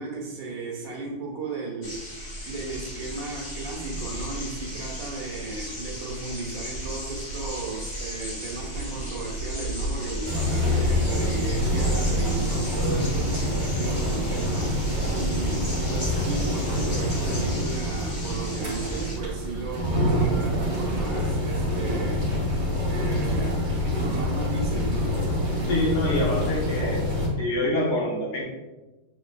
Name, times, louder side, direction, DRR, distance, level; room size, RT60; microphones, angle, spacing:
voice 1, 0.0-22.4 22.9-23.6 24.0-25.2, right 3 dB, 65° right, -2 dB, 1.7 m, -35 dB
sound 1, 1.8-19.2, right 1 dB, 30° left, 1.5 m, -35 dB
sound 2, 10.2-27.3, left 1 dB, 25° right, 0.8 m, -26 dB
voice 2, 25.7-27.0 27.4-28.4, left 1 dB, 70° left, -4 dB, 0.6 m, -25 dB
6.7 x 3.3 x 2.3 m, 1.2 s
omnidirectional pair, 2.2 m